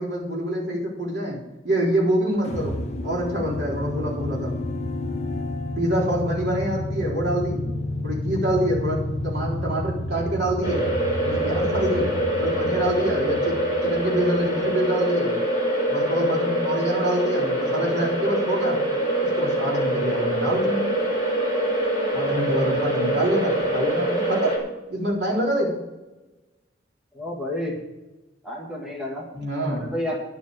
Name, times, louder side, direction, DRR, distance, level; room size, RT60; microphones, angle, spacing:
voice 1, 0.0-1.4 1.6-2.8 3.0-4.5 5.8-7.6 8.0-10.9 11.2-12.1 12.4-13.6 13.8-15.4 15.9-18.8 19.3-20.9 22.1-25.7 29.3-29.8, right 1 dB, 65° right, -3 dB, 4.0 m, -26 dB
sound 1, 2.4-14.7, left 1 dB, 35° left, 1.1 m, -30 dB
sound 2, 10.6-24.6, right 1 dB, 20° right, 3.2 m, -24 dB
voice 2, 27.1-27.8 28.4-29.3 29.7-30.2, left 1 dB, 5° right, -2 dB, 1.9 m, -30 dB
10.5 x 7.3 x 6.7 m, 1.1 s
head